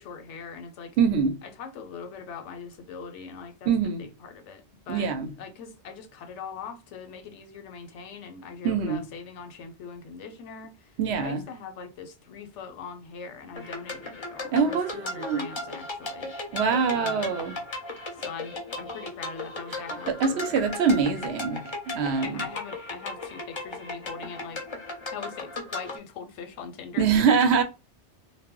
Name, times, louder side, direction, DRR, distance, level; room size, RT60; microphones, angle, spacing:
voice 1, 0.0-1.0 1.4-5.1 5.4-16.3 16.9-17.4 18.2-20.6 22.2-24.6 25.1-27.1, left 6 dB, 90° left, 0.9 m, -41 dB
voice 2, 1.0-1.3 3.7-4.1 4.9-5.3 8.6-9.0 11.0-11.4 14.5-15.5 16.5-17.5 20.1-22.4 27.0-27.6, right 6 dB, 70° right, 0.8 m, -24 dB
sound 1, 13.5-26.0, left 2 dB, 35° left, 0.5 m, -36 dB
2.1 x 2.0 x 3.6 m
omnidirectional pair, 1.2 m